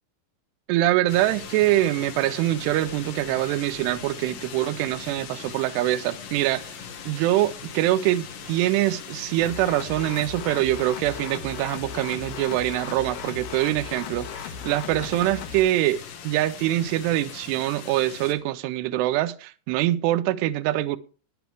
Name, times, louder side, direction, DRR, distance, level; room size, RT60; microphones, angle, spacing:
voice 1, 0.7-6.7 7.1-21.0, right 15 dB, 80° right, 2.7 m, -24 dB
sound 1, 1.1-18.3, left 6 dB, 85° left, 4.2 m, -40 dB
sound 2, 9.4-15.6, left 8 dB, 65° left, 2.3 m, -37 dB
14.0 x 10.5 x 3.5 m
omnidirectional pair, 5.0 m